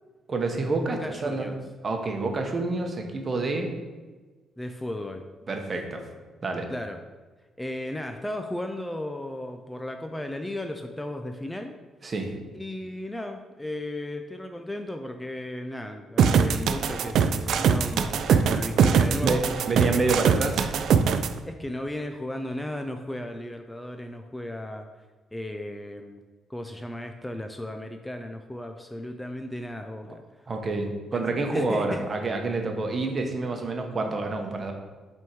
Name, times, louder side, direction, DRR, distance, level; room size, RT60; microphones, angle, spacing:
voice 1, 0.3-1.5 1.8-3.7 5.5-6.0 6.4-6.7 12.0-12.3 18.3-18.4 19.2-20.8 30.1-30.2 30.5-34.7, right 3 dB, 40° right, 3 dB, 0.9 m, -28 dB
voice 2, 0.9-1.5 4.6-5.2 6.7-7.0 7.6-11.7 12.5-19.7 21.5-24.9 25.3-26.2 26.5-30.2 31.1-32.1, left 1 dB, 10° left, 5 dB, 0.4 m, -35 dB
sound 1, 16.2-21.3, right 7 dB, 70° right, 0.3 m, -21 dB
5.9 x 3.6 x 4.5 m, 1.3 s
cardioid pair, 90°, 0 cm